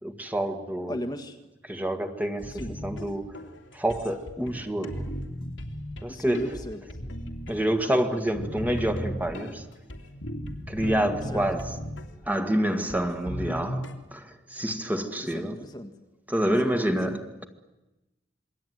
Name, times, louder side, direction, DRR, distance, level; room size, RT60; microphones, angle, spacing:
voice 1, 0.0-1.0 1.6-3.4 3.7-5.1 6.0-6.4 7.5-9.7 10.7-11.8 12.3-15.6 16.3-17.5, right 1 dB, 10° right, 2.0 m, -28 dB
voice 2, 0.9-1.4 2.5-2.8 6.1-6.8 11.3-11.5 15.2-16.0 16.6-17.2, equal, 20° left, 1.6 m, -36 dB
sound 1, 2.4-13.9, equal, 90° left, 2.9 m, -37 dB
27.0 x 23.0 x 9.5 m
head